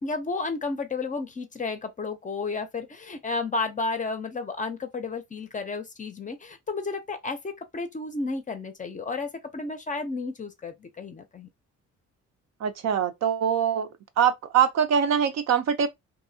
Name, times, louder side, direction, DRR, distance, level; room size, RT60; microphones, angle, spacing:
voice 1, 0.0-11.5, left 3 dB, 25° left, 0.5 m, -32 dB
voice 2, 12.6-13.9 14.2-15.9, right 8 dB, 60° right, 0.5 m, -23 dB
2.6 x 2.0 x 2.6 m
cardioid pair, 90°, 30 cm